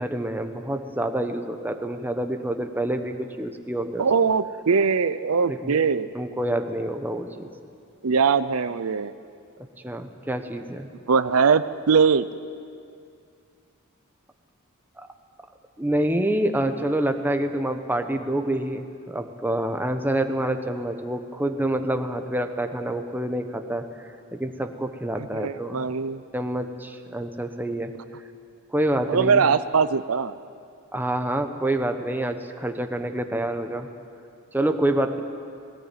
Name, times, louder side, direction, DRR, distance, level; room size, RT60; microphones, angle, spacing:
voice 1, 0.0-4.1 5.5-5.7 6.1-7.5 9.8-10.9 15.8-25.9 26.3-27.9 28.7-29.4 30.9-33.9 34.5-35.2, right 1 dB, 10° right, 6 dB, 1.1 m, -27 dB
voice 2, 4.0-6.1 8.0-9.1 11.1-12.3 25.3-26.2 29.1-30.3, right 5 dB, 75° right, 13 dB, 0.6 m, -21 dB
19.0 x 18.5 x 9.2 m, 2.4 s
head